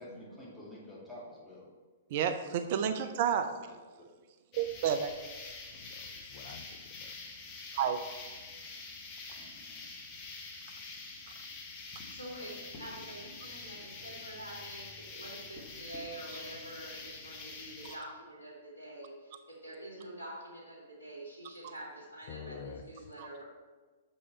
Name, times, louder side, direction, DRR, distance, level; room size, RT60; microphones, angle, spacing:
voice 1, 0.0-1.7 3.4-4.1 9.4-9.8, left 1 dB, 10° left, -7 dB, 2.5 m, -50 dB
voice 2, 2.1-3.5 4.5-5.1 7.8-8.0 23.2-23.3, right 8 dB, 45° right, 9 dB, 0.5 m, -30 dB
sound 1, 4.5-18.0, left 3 dB, 35° left, 1.1 m, -46 dB
voice 3, 5.7-7.1 22.3-23.1, left 6 dB, 50° left, 6 dB, 0.5 m, -48 dB
voice 4, 12.1-23.4, right 1 dB, 80° left, -5 dB, 2.4 m, -46 dB
6.5 x 5.5 x 4.4 m, 1.3 s
figure-of-eight pair, 110°, 0 cm